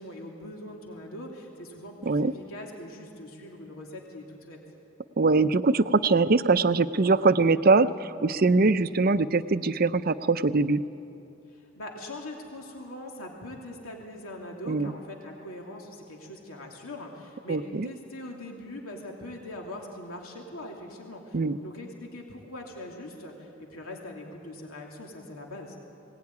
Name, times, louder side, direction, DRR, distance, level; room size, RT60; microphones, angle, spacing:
voice 1, 0.0-4.6 11.5-25.8, left 1 dB, 85° left, 0 dB, 2.8 m, -42 dB
voice 2, 5.2-10.8 14.7-14.9 17.5-17.9 21.3-21.6, right 3 dB, 45° right, 13 dB, 0.5 m, -22 dB
20.5 x 18.5 x 9.6 m, 2.8 s
head